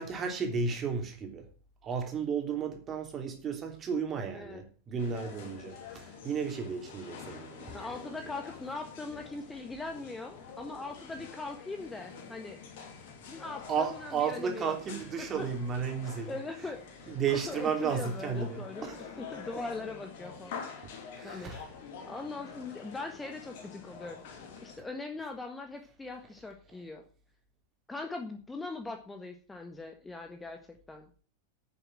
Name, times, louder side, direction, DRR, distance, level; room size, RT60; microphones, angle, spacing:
voice 1, 0.0-1.5 1.8-8.2 13.7-16.3 16.6-16.7 17.1-19.2 20.8-21.6 26.7-26.8, right 6 dB, 25° right, 3.2 m, -34 dB
sound 1, 5.0-24.8, left 6 dB, 50° left, 3.1 m, -47 dB
voice 2, 7.7-12.6 13.3-14.7 15.4-15.5 16.3-17.1 17.5-18.9 19.3-20.6 21.2-21.5 22.1-27.0 27.9-30.6 30.9-31.1, left 3 dB, 10° left, 1.5 m, -41 dB
10.0 x 7.1 x 7.6 m
figure-of-eight pair, 90°, 0 cm